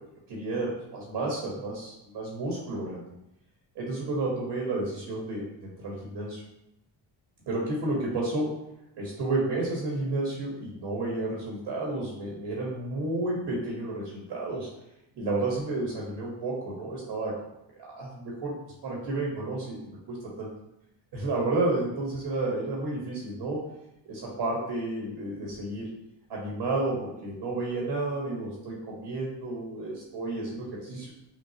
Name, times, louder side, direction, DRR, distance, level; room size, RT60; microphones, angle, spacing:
voice 1, 0.3-3.0 3.7-6.4 7.5-8.6 9.0-14.7 15.1-17.4 17.8-18.6 18.8-20.5 21.1-23.7 24.0-25.9 26.3-31.1, right 2 dB, 65° right, -3 dB, 1.5 m, -31 dB
6.1 x 2.4 x 2.8 m, 0.86 s
cardioid pair, 85°, 46 cm